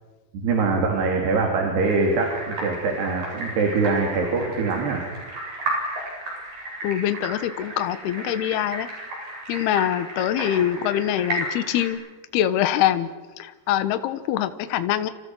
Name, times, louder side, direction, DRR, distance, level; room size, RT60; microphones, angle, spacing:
voice 1, 0.4-5.0, right 4 dB, 70° right, 1 dB, 5.4 m, -23 dB
sound 1, 1.8-11.9, right 1 dB, 55° right, 9.8 m, -33 dB
voice 2, 6.8-8.9 9.5-12.0 12.3-13.1 13.4-15.1, left 11 dB, 75° left, 11 dB, 3.1 m, -24 dB
29.5 x 28.0 x 6.3 m, 1.3 s
omnidirectional pair, 4.9 m